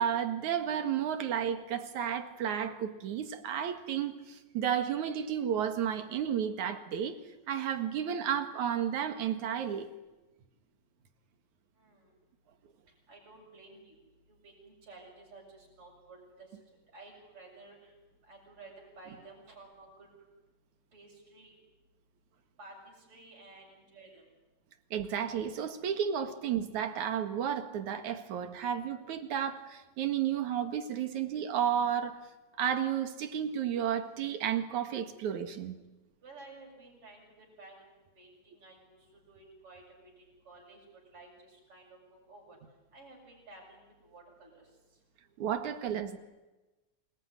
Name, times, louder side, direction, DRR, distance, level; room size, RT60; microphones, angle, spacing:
voice 1, 0.0-7.2 7.5-9.9 24.9-32.1 32.6-35.8 45.4-46.2, right 9 dB, 85° right, 8 dB, 3.2 m, -32 dB
voice 2, 13.1-14.0 14.3-16.5 16.9-17.9 18.3-20.1 20.9-21.5 22.6-24.2 36.2-37.8 38.1-39.0 39.3-39.8 40.2-40.8 41.1-42.0 42.3-42.6 42.9-44.6, right 2 dB, 50° right, -2 dB, 8.4 m, -53 dB
27.5 x 21.5 x 9.8 m, 1.1 s
omnidirectional pair, 3.3 m